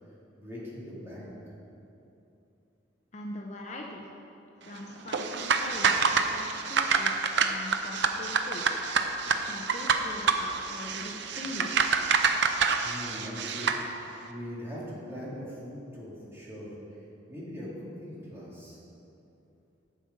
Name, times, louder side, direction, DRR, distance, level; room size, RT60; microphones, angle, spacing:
voice 1, 0.4-1.3 12.8-13.7 14.3-16.7 17.3-18.8, equal, 15° right, -7 dB, 2.0 m, -41 dB
voice 2, 3.1-4.1 4.6-8.8 9.5-11.9, left 1 dB, 35° left, -1 dB, 0.6 m, -42 dB
sound 1, 5.1-13.8, right 5 dB, 65° right, 0.5 m, -27 dB
8.0 x 7.4 x 5.2 m, 2.8 s
head